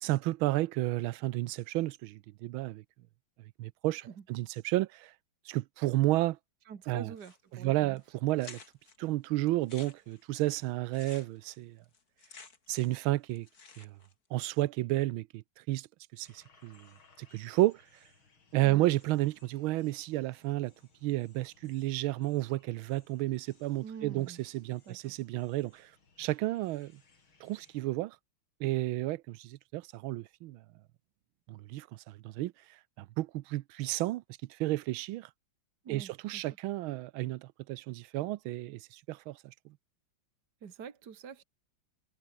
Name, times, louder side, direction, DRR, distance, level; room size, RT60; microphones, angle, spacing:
voice 1, 0.0-2.8 3.6-4.0 4.3-5.1 5.5-6.4 6.9-7.1 7.5-8.6 9.0-11.8 12.7-13.5 13.8-13.9 14.3-15.9 16.1-16.9 17.2-17.8 18.5-20.7 21.0-25.9 26.2-27.0 27.4-28.2 28.6-30.6 31.5-32.5 33.0-34.2 34.6-35.3 35.9-39.5, right 17 dB, 85° right, 1.5 m, -32 dB
voice 2, 6.7-8.0 18.6-18.9 23.8-24.4 24.8-25.1 35.8-36.5 40.6-41.4, right 7 dB, 55° right, 2.3 m, -45 dB
sound 1, 7.2-7.7 8.0-8.1 8.4-9.0 9.5-13.0 13.3-14.1, left 5 dB, 50° left, 3.0 m, -52 dB
sound 2, 16.2-27.8, left 4 dB, 85° left, 4.6 m, -66 dB
omnidirectional pair, 2.2 m